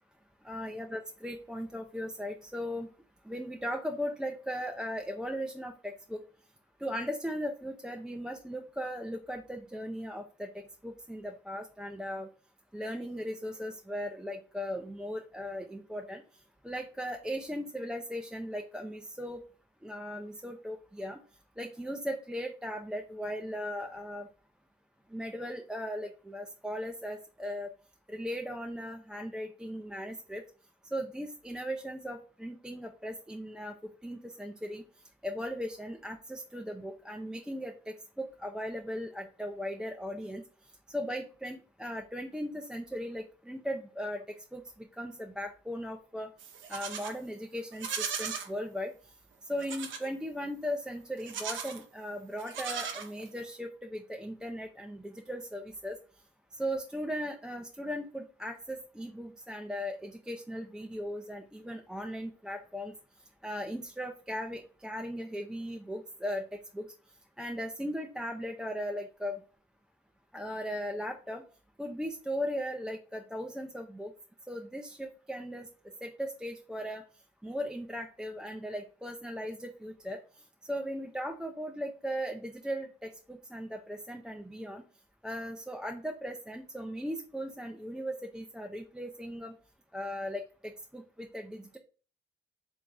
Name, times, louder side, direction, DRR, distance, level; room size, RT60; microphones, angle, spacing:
voice 1, 0.4-2.9 3.3-6.2 6.8-12.3 12.7-16.2 16.6-19.4 19.8-21.2 21.6-24.3 25.1-27.7 28.1-30.4 30.9-33.8 34.0-34.8 35.2-40.4 40.9-44.2 44.5-46.3 46.7-48.9 49.5-56.0 56.5-62.9 63.4-66.9 67.4-69.4 70.3-71.4 71.8-74.1 74.5-75.7 76.0-77.0 77.4-80.2 80.7-84.8 85.2-89.5 89.9-91.8, equal, 5° right, 3 dB, 0.3 m, -38 dB
Livestock farm animals working animals, 46.4-47.2 47.7-48.5 49.6-50.1 51.2-51.8 52.4-53.4, right 6 dB, 75° right, 0.6 m, -37 dB
3.4 x 2.6 x 3.2 m, 0.37 s
cardioid pair, 90°, 20 cm